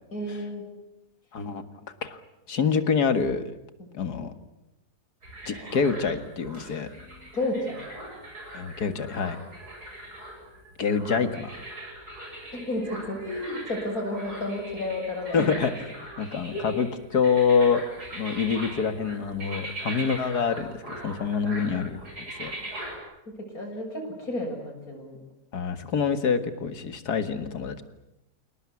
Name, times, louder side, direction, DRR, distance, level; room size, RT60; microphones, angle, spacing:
voice 1, 0.1-0.6 3.8-4.2 7.3-7.9 12.5-15.5 16.5-16.6 23.5-25.2, left 1 dB, 65° left, 2 dB, 7.2 m, -32 dB
voice 2, 1.3-1.6 2.0-2.2 2.5-3.6 3.9-4.3 5.5-6.9 8.5-9.4 10.8-11.6 15.3-15.7 16.2-17.8 18.1-22.0 22.4-22.5 25.5-27.8, left 6 dB, 80° left, 9 dB, 2.3 m, -26 dB
sound 1, 5.2-23.0, right 1 dB, 80° right, 7.6 m, -41 dB
28.5 x 18.5 x 9.7 m, 0.91 s
omnidirectional pair, 1.7 m